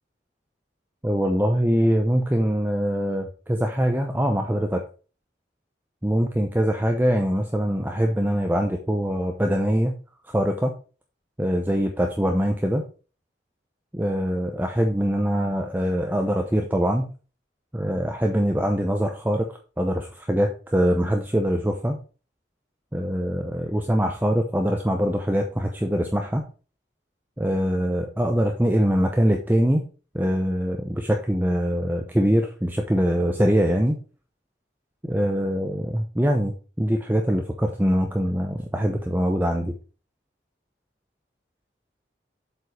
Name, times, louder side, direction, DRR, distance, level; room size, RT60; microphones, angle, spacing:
voice 1, 1.0-4.8 6.0-9.9 10.3-10.7 11.4-12.8 13.9-17.1 17.7-19.5 19.8-22.0 22.9-26.4 27.4-29.8 30.1-34.0 35.0-39.7, equal, 10° right, 3 dB, 0.7 m, -23 dB
7.8 x 5.4 x 4.8 m, 0.36 s
head